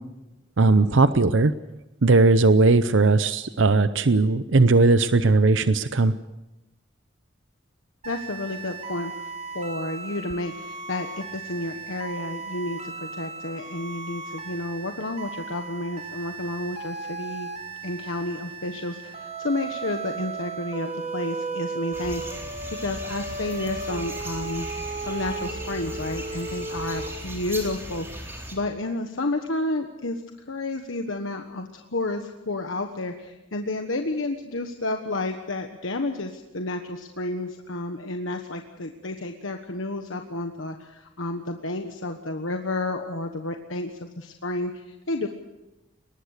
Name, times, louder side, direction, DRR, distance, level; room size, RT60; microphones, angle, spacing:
voice 1, 0.6-1.5 2.0-6.1, right 3 dB, 70° right, 12 dB, 0.7 m, -18 dB
voice 2, 8.0-9.1 9.5-17.5 17.8-30.2 30.5-45.3, left 2 dB, 80° left, 5 dB, 1.3 m, -31 dB
sound 1, 8.0-27.1, right 4 dB, 35° right, 2.5 m, -36 dB
sound 2, 21.9-28.6, right 1 dB, 10° right, 3.8 m, -38 dB
22.5 x 19.5 x 6.6 m, 1.0 s
head